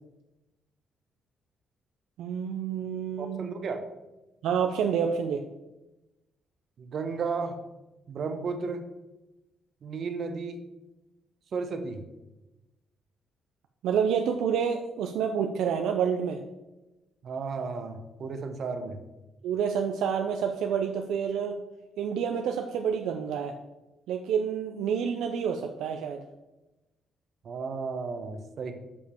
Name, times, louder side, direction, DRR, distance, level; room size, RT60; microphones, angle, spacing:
voice 1, 2.2-3.4 4.4-5.4 13.8-16.4 19.4-21.5 22.0-23.6 24.1-26.2, right 7 dB, 85° right, 5 dB, 0.5 m, -28 dB
voice 2, 3.2-3.8 6.8-7.6 8.1-8.9 9.8-10.6 11.5-12.0 17.2-19.0 27.4-28.7, right 4 dB, 55° right, 7 dB, 1.0 m, -33 dB
7.2 x 5.3 x 4.5 m, 1.0 s
cardioid pair, 90°, 0 cm